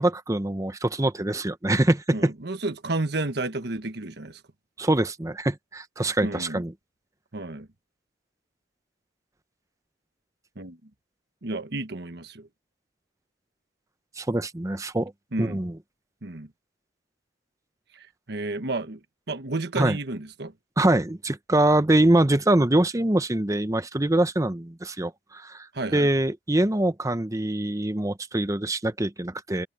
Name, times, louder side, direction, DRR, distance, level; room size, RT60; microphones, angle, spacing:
voice 1, 0.0-2.3 4.8-6.7 14.2-15.1 15.4-15.8 19.8-20.0 20.8-25.7 25.9-29.7, right 1 dB, 20° right, 0.8 m, -24 dB
voice 2, 2.1-4.4 6.2-6.6 7.3-7.7 10.6-10.8 11.4-12.5 15.3-15.6 16.2-16.5 17.9-19.0 19.3-20.5 25.7-26.1, right 2 dB, 60° right, 1.3 m, -31 dB
head